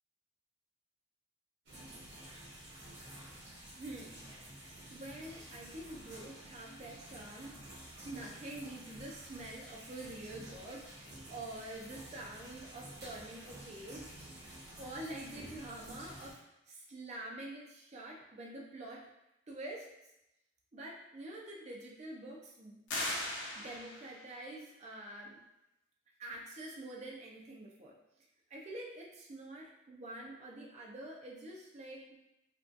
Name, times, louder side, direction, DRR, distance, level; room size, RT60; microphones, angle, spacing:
sound 1, 1.7-16.3, right 1 dB, 70° right, 1.1 m, -51 dB
voice 1, 3.7-4.3 4.9-7.5 8.0-14.1 14.8-19.1 19.5-19.9 20.7-22.9 23.5-25.4 26.2-28.0 28.5-32.2, right 1 dB, 40° right, -1 dB, 0.4 m, -46 dB
sound 2, 22.9-24.3, left 1 dB, 70° left, 0.6 m, -38 dB
2.5 x 2.3 x 2.5 m, 0.88 s
head